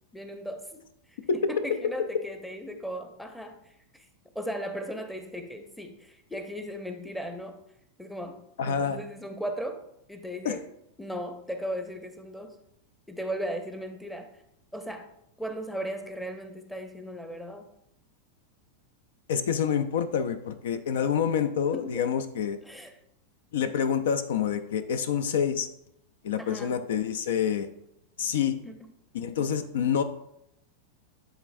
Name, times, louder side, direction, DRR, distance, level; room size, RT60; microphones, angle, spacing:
voice 1, 0.1-0.8 1.1-1.2 1.5-4.1 4.3-7.6 8.0-9.8 10.1-10.6 11.0-12.6 13.1-14.3 14.7-15.1 15.4-17.7 21.7-22.0 22.6-22.9 26.4-26.8 28.6-28.9, equal, 5° left, 6 dB, 0.7 m, -37 dB
voice 2, 8.6-9.0 10.4-10.5 19.3-22.6 23.5-25.7 26.2-27.7 28.2-28.6 29.1-30.0, left 7 dB, 60° left, 12 dB, 0.4 m, -27 dB
11.0 x 3.8 x 2.6 m, 0.79 s
figure-of-eight pair, 90°, 0 cm